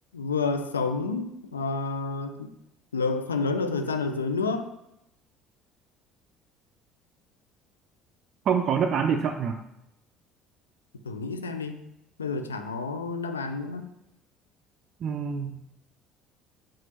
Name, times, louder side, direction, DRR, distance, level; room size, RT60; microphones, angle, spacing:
voice 1, 0.1-2.5 2.9-4.7 11.0-11.8 12.2-13.9, left 4 dB, 90° left, 7 dB, 0.3 m, -29 dB
voice 2, 8.5-9.6 15.0-15.6, right 7 dB, 50° right, 4 dB, 0.3 m, -26 dB
5.9 x 2.4 x 2.9 m, 0.84 s
hypercardioid pair, 60°, 0 cm